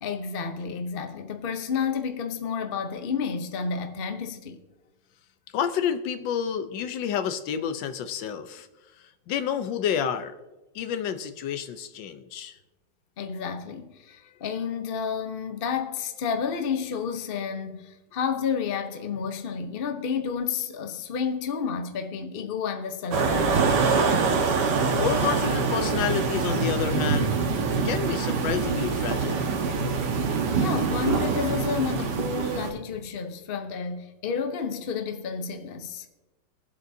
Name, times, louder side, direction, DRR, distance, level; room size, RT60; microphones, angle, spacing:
voice 1, 0.0-4.6 13.2-23.6 30.6-36.1, left 6 dB, 50° left, 0.7 m, -30 dB
voice 2, 5.5-8.7 9.3-10.3 10.7-12.6 25.0-27.4 27.8-29.4, left 8 dB, 85° left, 1.5 m, -29 dB
sound 1, 23.1-32.7, right 4 dB, 70° right, 1.8 m, -25 dB
21.0 x 8.0 x 2.7 m
omnidirectional pair, 2.0 m